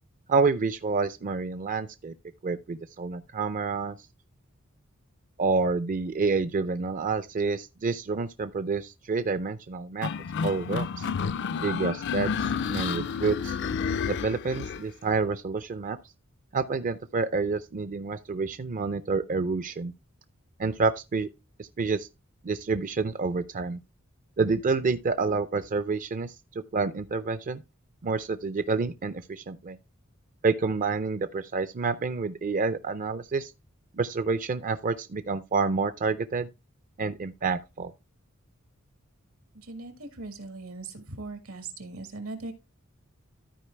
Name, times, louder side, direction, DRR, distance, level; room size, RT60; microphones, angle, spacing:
voice 1, 0.3-2.1 2.4-4.0 5.4-10.1 10.4-11.1 11.6-13.6 14.0-16.0 16.5-19.9 20.6-21.3 21.6-22.1 22.4-23.8 24.4-27.6 28.0-29.8 30.4-33.5 34.0-36.5 37.0-37.9, right 4 dB, 40° right, 0.4 m, -28 dB
sound 1, 10.0-14.8, left 6 dB, 55° left, 0.4 m, -30 dB
voice 2, 39.5-42.5, right 3 dB, 80° right, 1.8 m, -39 dB
13.0 x 4.6 x 3.3 m
head